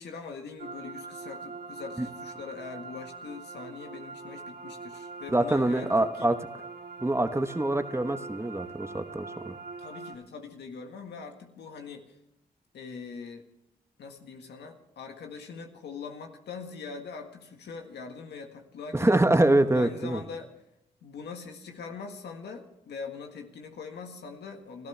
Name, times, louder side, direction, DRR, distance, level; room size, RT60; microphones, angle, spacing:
voice 1, 0.0-6.3 9.8-12.2 12.7-13.4 14.0-19.2 19.7-20.5 21.0-24.9, left 5 dB, 85° left, 4 dB, 1.8 m, -42 dB
sound 1, 0.6-10.1, right 4 dB, 60° right, 1.7 m, -43 dB
voice 2, 5.3-6.4 7.0-9.5 18.9-20.2, right 1 dB, 15° right, 8 dB, 1.2 m, -25 dB
29.0 x 13.5 x 3.4 m, 0.80 s
cardioid pair, 55°, 17 cm